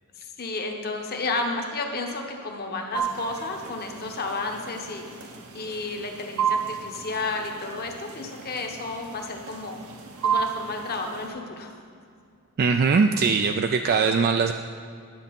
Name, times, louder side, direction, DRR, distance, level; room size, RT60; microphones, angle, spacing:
voice 1, 0.1-9.8 10.2-11.7, left 3 dB, 45° left, 3 dB, 1.1 m, -32 dB
sound 1, 2.9-11.3, right 7 dB, 75° right, 1.0 m, -33 dB
voice 2, 12.6-14.5, right 5 dB, 45° right, 6 dB, 0.3 m, -21 dB
10.5 x 7.3 x 5.3 m, 2.4 s
head